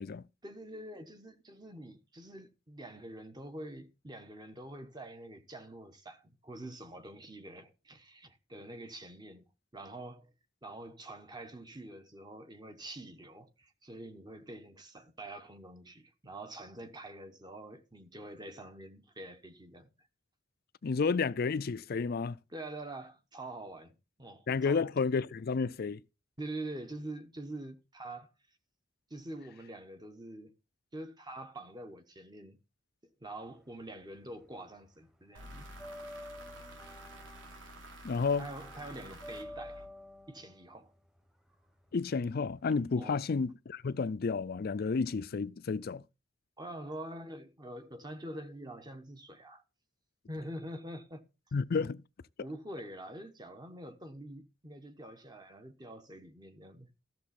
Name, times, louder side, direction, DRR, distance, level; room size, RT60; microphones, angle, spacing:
voice 1, 0.4-9.4 9.7-10.3 10.6-20.1 22.5-23.9 24.2-24.9 26.4-28.3 29.1-30.5 30.9-32.6 33.2-35.7 38.4-39.8 40.3-40.9 42.9-43.2 46.6-49.6 50.3-51.2 52.4-57.0, right 1 dB, 20° right, 1.1 m, -45 dB
voice 2, 20.8-22.4 24.5-26.0 38.0-38.5 41.9-46.0 51.5-52.0, left 4 dB, 50° left, 0.4 m, -31 dB
sound 1, 33.4-34.6 34.8-42.7, left 1 dB, 5° right, 1.2 m, -50 dB
sound 2, 35.3-40.3, right 1 dB, 80° right, 3.1 m, -50 dB
13.5 x 6.9 x 4.2 m
head